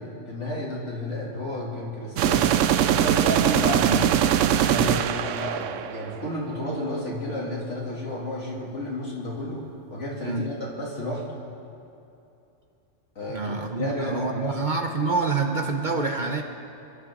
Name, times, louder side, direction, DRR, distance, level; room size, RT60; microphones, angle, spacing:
voice 1, 0.0-2.5 2.9-4.1 4.6-9.6 9.9-11.4 13.1-14.6, left 1 dB, 65° left, -5 dB, 3.2 m, -31 dB
sound 1, 2.2-6.2, right 10 dB, 75° right, 0.9 m, -22 dB
voice 2, 13.3-16.4, right 3 dB, 40° right, 3 dB, 0.9 m, -27 dB
27.5 x 11.5 x 3.8 m, 2.8 s
omnidirectional pair, 1.3 m